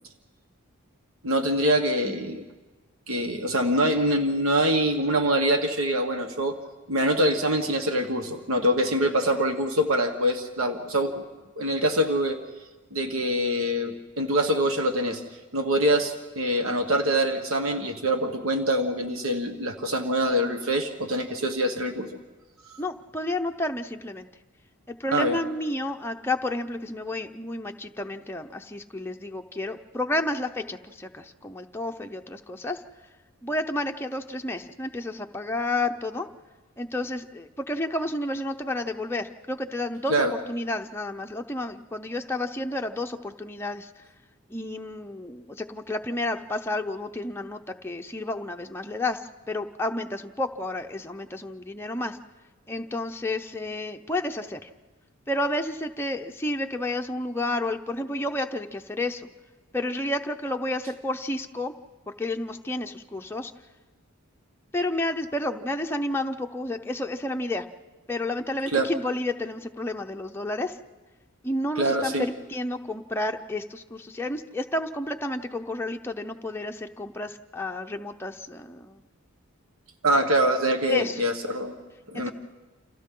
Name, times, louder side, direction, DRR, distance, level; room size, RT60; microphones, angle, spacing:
voice 1, 1.2-2.4 3.1-6.6 6.9-11.2 11.6-12.4 12.9-15.2 15.5-22.1 25.1-25.4 40.1-40.3 68.7-68.9 71.8-72.3 80.0-81.7 82.1-82.3, right 1 dB, 75° right, 5 dB, 1.3 m, -24 dB
voice 2, 22.8-24.3 24.9-32.8 33.4-36.3 36.8-44.0 44.5-52.2 52.7-54.7 55.3-59.3 59.7-61.7 62.1-63.5 64.7-67.7 68.1-70.8 71.4-79.0 80.9-81.2 82.1-82.3, left 1 dB, 10° left, 4 dB, 0.6 m, -31 dB
29.5 x 27.5 x 3.8 m, 1.2 s
head